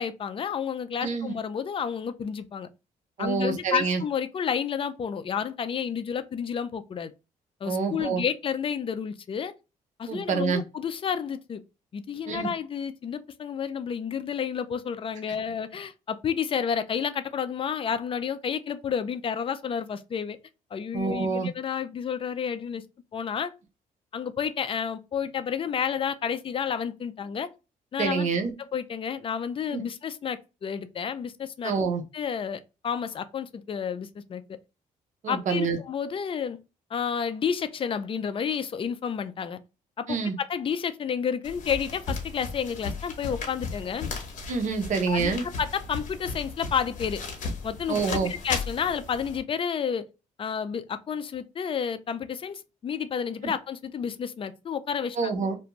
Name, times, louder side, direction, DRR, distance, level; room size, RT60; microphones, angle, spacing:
voice 1, 0.0-2.7 3.2-7.1 7.6-9.5 10.0-11.6 11.9-20.4 20.7-22.8 23.1-23.5 24.1-27.5 27.9-28.3 28.6-31.7 32.1-34.4 35.3-36.6 36.9-39.6 40.0-40.1 40.4-44.1 45.1-47.2 47.6-50.1 50.4-55.2, left 7 dB, 40° left, 0.4 m, -30 dB
voice 2, 1.0-1.3 3.2-4.0 7.7-8.2 10.1-10.6 12.3-12.5 20.9-21.5 28.0-28.5 29.7-29.8 31.6-32.0 35.2-35.8 40.1-40.4 44.5-45.4 47.9-48.3 53.4-53.5 55.2-55.6, right 5 dB, 55° right, 0.7 m, -27 dB
sound 1, 41.4-49.4, left 4 dB, 60° left, 0.9 m, -36 dB
2.5 x 2.2 x 3.0 m
cardioid pair, 90°, 15 cm